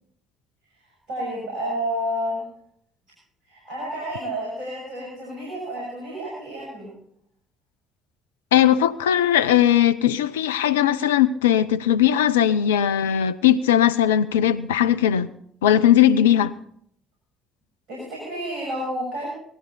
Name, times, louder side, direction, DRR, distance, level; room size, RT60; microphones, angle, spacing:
voice 1, 1.1-2.4 3.4-6.9 17.9-19.3, equal, 65° right, -4 dB, 6.8 m, -30 dB
voice 2, 8.5-15.3 15.6-16.5, left 10 dB, 75° left, 13 dB, 0.5 m, -19 dB
18.0 x 14.0 x 4.1 m, 0.69 s
figure-of-eight pair, 50°, 0 cm